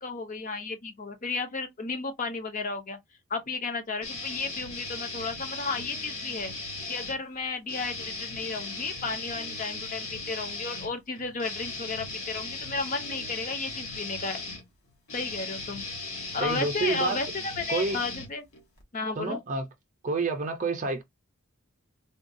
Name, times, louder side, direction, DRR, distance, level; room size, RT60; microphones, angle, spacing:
voice 1, 0.0-3.0 3.3-6.5 6.9-14.4 15.1-15.8 16.3-18.4 18.9-19.4, left 4 dB, 35° left, 0.6 m, -33 dB
sound 1, 4.0-7.2 7.7-18.8, left 3 dB, 75° left, 1.4 m, -37 dB
voice 2, 16.4-17.2 17.7-18.0 19.2-19.6 20.0-21.0, right 3 dB, 35° right, 0.6 m, -28 dB
3.6 x 2.3 x 2.6 m
head